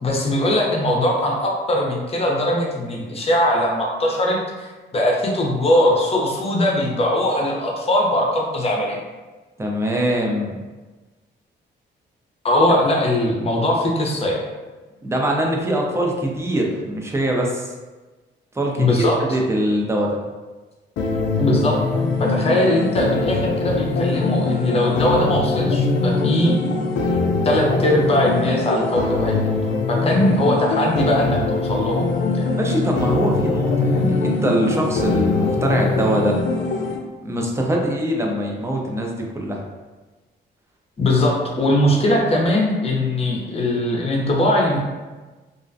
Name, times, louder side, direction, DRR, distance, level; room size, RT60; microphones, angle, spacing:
voice 1, 0.0-9.0 12.4-14.4 18.8-19.2 21.4-21.8 22.2-26.5 27.4-29.6 29.9-32.4 41.0-44.8, left 1 dB, 30° left, -1 dB, 0.6 m, -20 dB
voice 2, 9.6-10.6 15.0-17.7 18.5-20.2 32.5-36.4 37.2-39.6, right 1 dB, 15° right, -1 dB, 0.5 m, -23 dB
sound 1, 21.0-37.0, left 3 dB, 70° left, 0.5 m, -22 dB
2.4 x 2.1 x 2.5 m, 1.2 s
cardioid pair, 90°, 20 cm